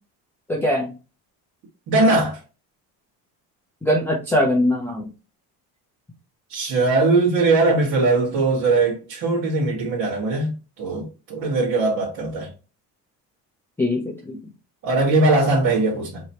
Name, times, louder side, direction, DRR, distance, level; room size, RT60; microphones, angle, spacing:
voice 1, 0.5-0.9 3.8-5.1 13.8-14.4, left 1 dB, 5° left, 0.4 m, -21 dB
voice 2, 1.9-2.4 6.5-12.5 14.8-16.2, right 3 dB, 50° right, 1.4 m, -20 dB
4.7 x 2.9 x 2.8 m
cardioid pair, 180°, 38 cm